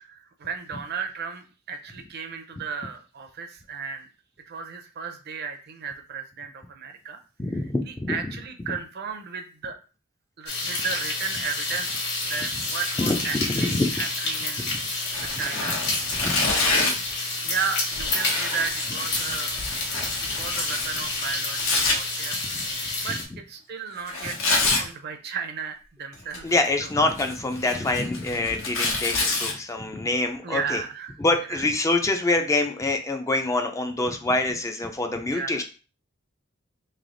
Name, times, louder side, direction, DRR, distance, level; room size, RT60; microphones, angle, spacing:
voice 1, 0.4-4.1 4.5-7.2 7.8-9.8 10.4-11.9 12.2-14.7 15.2-17.0 17.4-19.6 19.9-20.0 20.3-22.4 22.7-23.2 23.5-26.5 26.8-26.9 30.4-31.2 31.5-31.6 35.2-35.6, right 6 dB, 50° right, 6 dB, 0.6 m, -34 dB
voice 2, 7.4-8.1 13.0-13.9 14.6-14.7 16.2-16.4 26.4-30.8 31.2-35.6, left 2 dB, 15° left, 5 dB, 0.4 m, -25 dB
sound 1, 10.5-23.2, left 3 dB, 55° left, 1.3 m, -29 dB
Tearing, 15.1-17.1 17.9-22.0 24.1-24.8 26.1-26.7 27.0-29.5, left 3 dB, 85° left, 1.2 m, -27 dB
3.3 x 2.8 x 3.8 m, 0.35 s
head